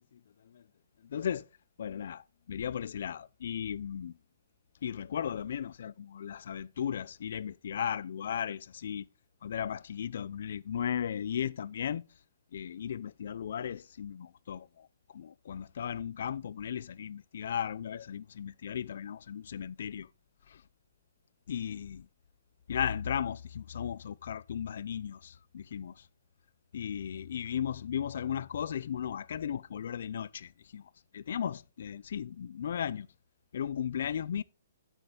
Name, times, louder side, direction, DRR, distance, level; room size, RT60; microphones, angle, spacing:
voice 1, 1.1-1.5 1.8-4.1 4.8-9.1 9.4-12.0 12.5-14.9 15.1-20.1 20.5-20.6 21.5-22.1 22.7-25.9 26.7-33.1 33.5-34.4, left 8 dB, 60° left, 0.5 m, -36 dB
9.0 x 7.9 x 3.8 m
hypercardioid pair, 165°, 0 cm